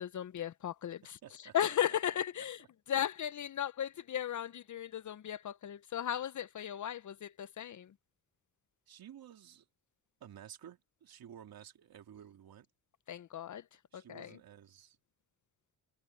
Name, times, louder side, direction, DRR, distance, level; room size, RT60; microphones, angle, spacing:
voice 1, 0.0-1.2 1.5-2.6 2.9-7.9 13.1-13.6 13.9-14.4, left 10 dB, 50° left, 0.7 m, -36 dB
voice 2, 1.0-2.0 8.9-9.7 10.2-12.7 13.9-15.0, right 10 dB, 70° right, 3.1 m, -53 dB
cardioid pair, 65°, 37 cm